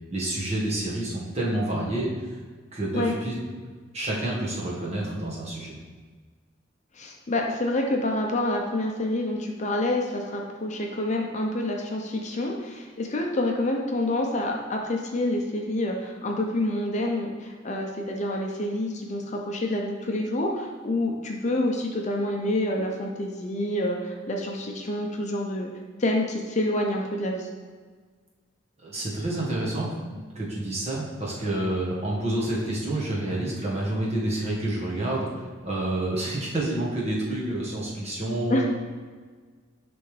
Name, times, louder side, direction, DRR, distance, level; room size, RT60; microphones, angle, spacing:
voice 1, 0.1-2.1 2.7-3.3 3.9-5.8 28.8-38.7, right 1 dB, 35° right, -5 dB, 1.4 m, -28 dB
voice 2, 6.9-25.7 26.0-27.5 38.5-38.6, left 1 dB, 35° left, 1 dB, 0.6 m, -27 dB
10.0 x 3.4 x 3.3 m, 1.5 s
head